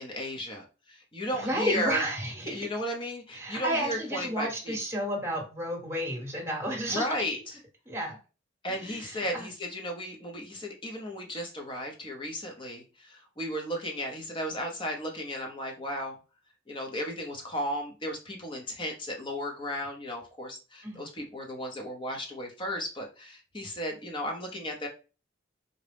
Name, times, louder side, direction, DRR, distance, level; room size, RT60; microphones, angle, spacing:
voice 1, 0.0-2.0 2.4-4.8 6.9-7.4 8.6-16.2 16.7-24.9, equal, 25° left, 1 dB, 0.8 m, -35 dB
voice 2, 1.3-2.7 3.3-7.0 7.9-8.2 8.7-9.5 20.8-21.1, right 1 dB, 15° right, -1 dB, 1.1 m, -32 dB
3.8 x 2.2 x 3.3 m, 0.33 s
head